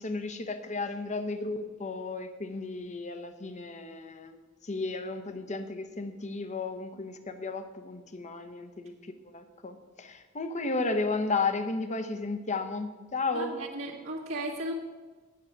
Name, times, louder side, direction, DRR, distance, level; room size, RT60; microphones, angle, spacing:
voice 1, 0.0-13.5, left 3 dB, 35° left, 9 dB, 0.9 m, -34 dB
voice 2, 13.3-14.7, right 1 dB, 70° right, -6 dB, 1.7 m, -36 dB
9.5 x 6.4 x 8.5 m, 1.3 s
head